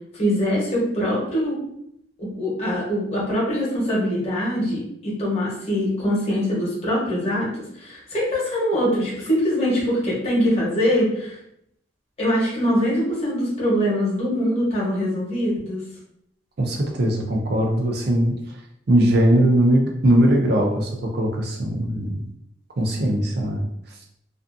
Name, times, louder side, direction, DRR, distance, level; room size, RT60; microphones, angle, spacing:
voice 1, 0.1-1.6 2.2-7.5 7.7-11.4 12.2-15.8, equal, 35° left, -5 dB, 0.9 m, -23 dB
voice 2, 16.6-18.4 18.9-22.2 22.8-23.7, right 1 dB, 55° right, 1 dB, 0.5 m, -20 dB
2.5 x 2.3 x 2.5 m, 0.75 s
head